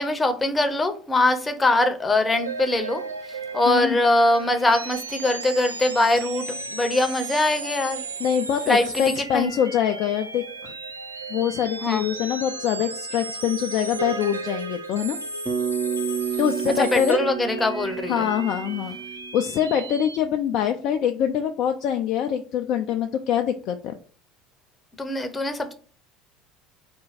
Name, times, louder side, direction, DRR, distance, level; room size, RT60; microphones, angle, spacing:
voice 1, 0.0-8.0 8.7-9.5 11.8-12.0 16.8-18.3 25.0-25.7, left 2 dB, 15° left, 0.7 m, -22 dB
sound 1, 2.3-20.2, right 3 dB, 90° right, 0.4 m, -35 dB
voice 2, 3.7-4.0 8.2-10.7 11.3-15.2 16.4-17.2 18.1-19.0 19.3-24.0, left 9 dB, 55° left, 0.4 m, -24 dB
Bass guitar, 15.5-19.8, right 8 dB, 30° right, 0.7 m, -30 dB
4.2 x 2.2 x 4.0 m
figure-of-eight pair, 70°, 0 cm